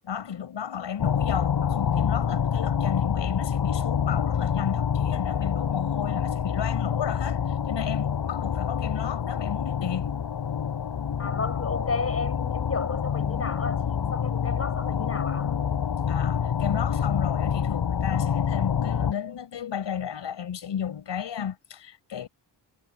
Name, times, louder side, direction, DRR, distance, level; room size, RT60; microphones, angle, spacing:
voice 1, 0.0-10.1 16.1-22.3, left 8 dB, 80° left, 5.7 m, -33 dB
sound 1, 1.0-19.1, left 8 dB, 65° left, 4.7 m, -27 dB
voice 2, 11.2-15.5, left 4 dB, 35° left, 6.9 m, -32 dB
wide cardioid pair, 130°, 43 cm